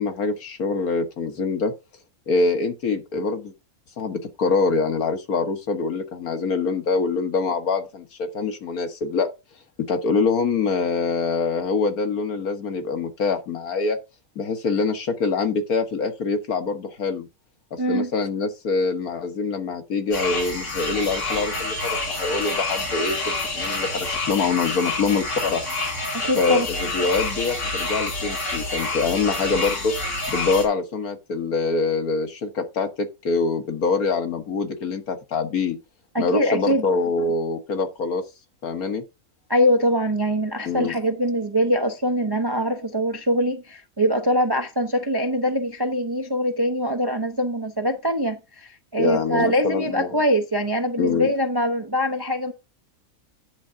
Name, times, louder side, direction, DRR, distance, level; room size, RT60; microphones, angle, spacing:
voice 1, 0.0-1.7 2.3-3.5 4.0-9.3 9.9-14.0 14.4-17.3 17.7-25.6 26.4-29.9 30.3-35.8 36.2-38.2 38.6-39.0 40.6-40.9 49.0-50.2 51.0-51.3, left 4 dB, 80° left, 1.9 m, -24 dB
voice 2, 17.8-18.1 26.1-26.7 36.1-36.8 39.5-52.5, equal, 30° right, 0.4 m, -23 dB
sound 1, 20.1-30.7, left 2 dB, 50° left, 2.9 m, -28 dB
10.5 x 3.8 x 5.7 m
omnidirectional pair, 1.5 m